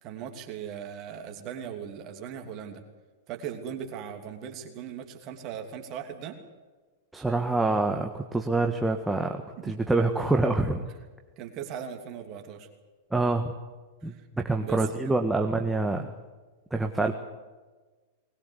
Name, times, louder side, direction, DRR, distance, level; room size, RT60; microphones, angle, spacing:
voice 1, 0.0-2.8 3.3-6.4 9.6-9.8 11.4-12.7 14.0-14.3 14.6-14.9, right 8 dB, 40° right, 4 dB, 2.9 m, -38 dB
voice 2, 7.1-10.8 13.1-13.5 14.0-16.1 16.7-17.1, right 2 dB, 5° right, 3 dB, 1.6 m, -26 dB
21.0 x 20.0 x 8.3 m, 1.3 s
figure-of-eight pair, 100°, 0 cm